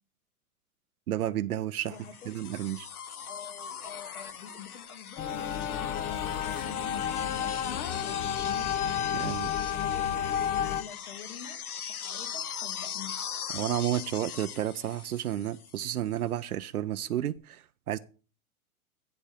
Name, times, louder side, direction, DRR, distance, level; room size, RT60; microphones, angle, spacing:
voice 1, 1.1-2.0 2.3-2.9 9.1-9.5 13.5-18.0, right 12 dB, 75° right, 0.6 m, -31 dB
sound 1, 1.9-15.9 17.4-17.5, left 8 dB, 75° left, 0.9 m, -40 dB
voice 2, 1.9-2.6 3.3-8.7 9.7-10.3 10.6-13.2, left 7 dB, 60° left, 2.3 m, -47 dB
sound 2, 5.2-10.8, left 9 dB, 20° left, 0.5 m, -31 dB
10.5 x 3.5 x 7.1 m
hypercardioid pair, 110°, 44 cm